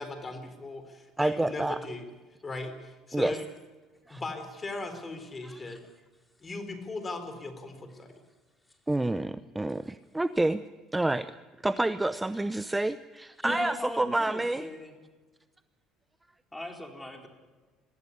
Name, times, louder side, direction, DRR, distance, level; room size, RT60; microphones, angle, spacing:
voice 1, 0.0-2.0 2.4-3.5 4.1-5.8 6.4-8.1, left 2 dB, 25° left, 9 dB, 4.0 m, -38 dB
voice 2, 1.2-1.8 3.1-3.4 4.1-4.2 5.4-5.6 8.9-10.6 10.9-11.3 11.6-14.7, right 2 dB, 10° right, 13 dB, 0.7 m, -28 dB
voice 3, 13.4-14.9 16.5-17.3, left 1 dB, 10° left, 3 dB, 4.4 m, -38 dB
22.5 x 15.5 x 9.9 m, 1.3 s
cardioid pair, 115°, 0 cm